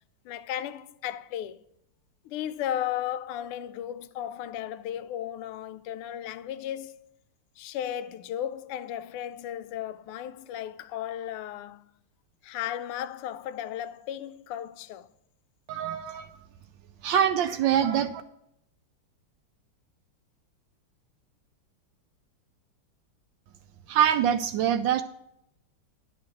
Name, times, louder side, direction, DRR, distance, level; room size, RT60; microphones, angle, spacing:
voice 1, 0.2-1.6 2.2-7.0 7.6-11.9 12.4-15.1, left 11 dB, 90° left, 1.5 m, -35 dB
voice 2, 15.7-16.3 17.0-18.2 23.9-25.0, right 9 dB, 75° right, 1.1 m, -24 dB
11.0 x 5.1 x 7.6 m
omnidirectional pair, 2.4 m